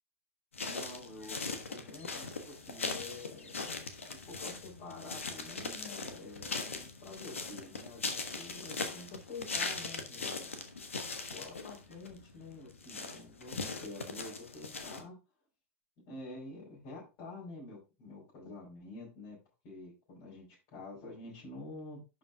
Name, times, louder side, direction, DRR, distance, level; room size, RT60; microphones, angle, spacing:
sound 1, 0.5-15.0, left 4 dB, 85° left, 1.3 m, -40 dB
voice 1, 0.7-3.7 4.3-10.5 11.3-15.2 16.1-19.4 19.6-22.0, left 2 dB, 50° left, -6 dB, 5.8 m, -48 dB
11.0 x 5.0 x 3.6 m, 0.28 s
figure-of-eight pair, 90°, 7 cm